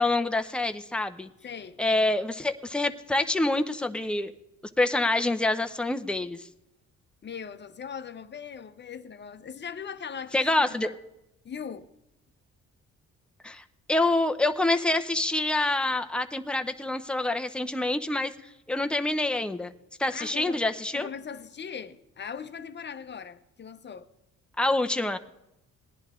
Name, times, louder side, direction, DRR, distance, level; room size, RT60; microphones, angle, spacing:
voice 1, 0.0-1.3 1.8-4.3 4.8-6.5 10.3-10.9 13.4-18.3 18.7-19.7 20.0-21.1 24.6-25.2, left 2 dB, 5° left, 0.7 m, -26 dB
voice 2, 1.4-1.9 7.2-11.0 11.4-11.9 20.1-20.6 20.9-24.1, left 7 dB, 35° left, 0.8 m, -40 dB
18.5 x 10.5 x 3.7 m
cardioid pair, 90°, 30 cm